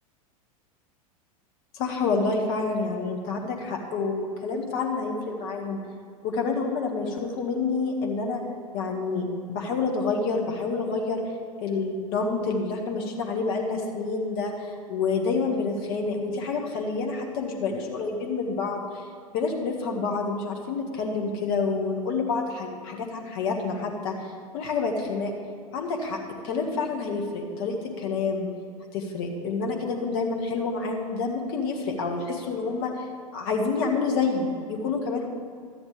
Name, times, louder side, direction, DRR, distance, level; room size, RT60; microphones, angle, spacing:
voice 1, 1.7-5.8 6.2-8.4 8.7-11.2 11.6-19.1 19.3-24.2 24.5-25.3 25.7-28.5 28.9-33.1 33.3-35.3, left 4 dB, 55° left, 1 dB, 1.8 m, -28 dB
13.5 x 9.8 x 3.4 m, 2.3 s
hypercardioid pair, 90°, 19 cm